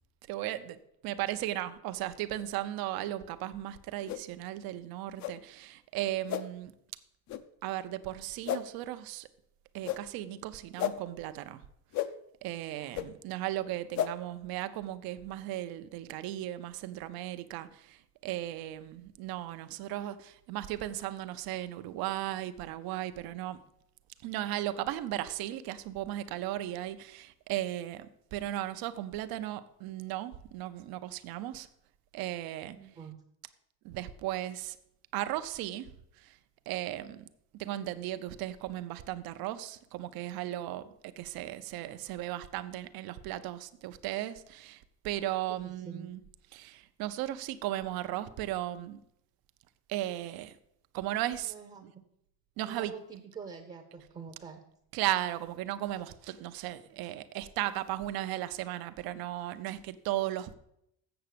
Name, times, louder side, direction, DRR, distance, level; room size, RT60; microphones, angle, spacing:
voice 1, 0.3-6.7 7.6-9.3 9.7-11.6 12.4-23.6 24.2-31.7 32.1-32.8 33.8-34.8 35.1-36.4 36.7-37.2 37.5-46.2 46.5-49.0 49.9-50.6 50.9-51.5 52.6-52.9 54.9-60.5, right 14 dB, 70° right, 0.7 m, -36 dB
sound 1, 4.1-4.2 5.2-5.3 6.3-6.4 7.3-7.4 8.4-8.6 9.8-10.0 10.8-10.9 11.9-12.1 12.9-13.1 13.9-14.1, left 11 dB, 50° left, 0.6 m, -32 dB
voice 2, 12.8-13.1 32.7-33.2 45.5-46.1 51.4-51.9 52.6-54.6, right 6 dB, 20° right, 0.7 m, -46 dB
7.9 x 6.9 x 6.7 m
cardioid pair, 175°, 37 cm